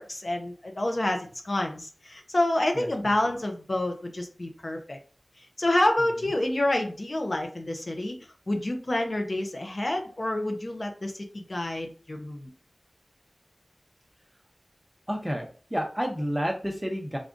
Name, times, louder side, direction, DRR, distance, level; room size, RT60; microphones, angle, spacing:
voice 1, 0.0-5.0 5.6-8.1 8.5-12.5, left 1 dB, 50° left, 4 dB, 0.7 m, -28 dB
voice 2, 15.1-17.2, equal, 10° right, 2 dB, 0.9 m, -30 dB
3.5 x 2.4 x 3.7 m, 0.39 s
wide cardioid pair, 55°, 0 cm